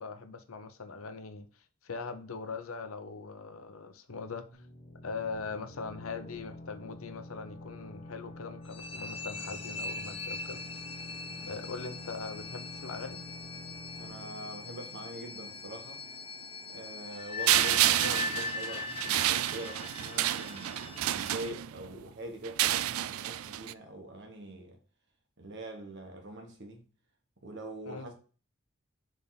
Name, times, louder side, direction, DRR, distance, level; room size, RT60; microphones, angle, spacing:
voice 1, 0.0-1.5 1.8-4.4 5.0-10.6 11.4-13.2 27.9-28.1, left 4 dB, 80° left, 0.8 m, -41 dB
sound 1, 4.5-16.0, left 1 dB, 40° left, 1.1 m, -48 dB
sound 2, 8.7-21.5, left 3 dB, 25° left, 0.5 m, -41 dB
voice 2, 11.3-11.6 14.0-16.0 16.7-24.8 25.4-26.8 27.4-28.1, right 1 dB, 55° right, 1.5 m, -44 dB
sound 3, 17.5-21.9 22.4-23.7, right 13 dB, 85° right, 0.3 m, -29 dB
6.9 x 3.6 x 4.1 m
head